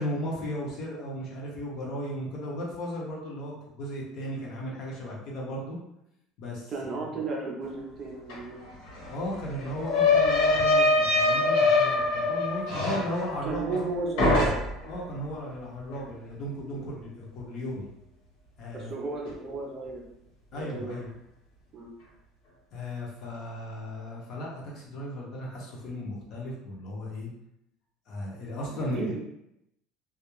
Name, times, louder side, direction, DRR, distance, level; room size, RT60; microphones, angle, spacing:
voice 1, 0.0-5.8 6.4-7.1 9.1-13.8 14.9-17.9 18.6-18.9 20.5-21.1 22.7-27.3 28.1-29.1, left 1 dB, 45° left, -3 dB, 0.7 m, -35 dB
voice 2, 6.7-8.6 13.4-14.6 16.7-16.9 18.7-20.1 20.5-21.0 21.7-21.9 28.7-29.2, right 3 dB, 30° right, -1 dB, 0.4 m, -34 dB
sound 1, 8.3-8.4 8.6-13.9 14.2-14.9, left 2 dB, 70° left, 1.0 m, -24 dB
2.3 x 2.0 x 3.0 m, 0.81 s
cardioid pair, 165°, 0 cm